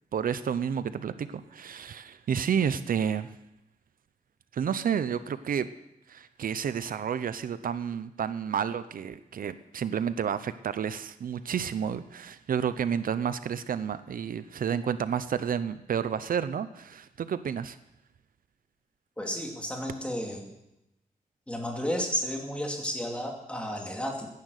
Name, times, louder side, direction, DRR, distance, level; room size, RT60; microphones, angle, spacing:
voice 1, 0.1-3.4 4.5-5.7 6.1-17.8, right 7 dB, 75° right, 13 dB, 0.6 m, -30 dB
voice 2, 19.2-20.5 21.5-24.3, equal, 10° left, 0 dB, 2.6 m, -32 dB
16.0 x 10.5 x 6.5 m, 0.89 s
wide cardioid pair, 180°, 15 cm